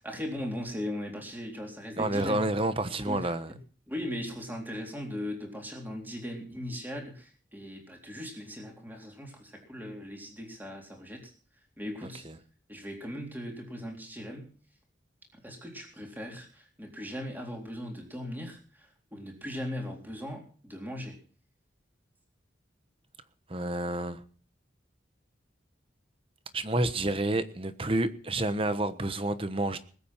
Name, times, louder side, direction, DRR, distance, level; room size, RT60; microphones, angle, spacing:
voice 1, 0.0-2.5 2.8-3.6 3.9-11.3 11.8-12.3 12.7-14.5 15.3-21.2, left 1 dB, 10° right, 3.8 m, -39 dB
voice 2, 2.0-3.5 23.5-24.2 26.5-29.8, right 1 dB, 30° right, 1.2 m, -29 dB
20.5 x 8.8 x 6.0 m
head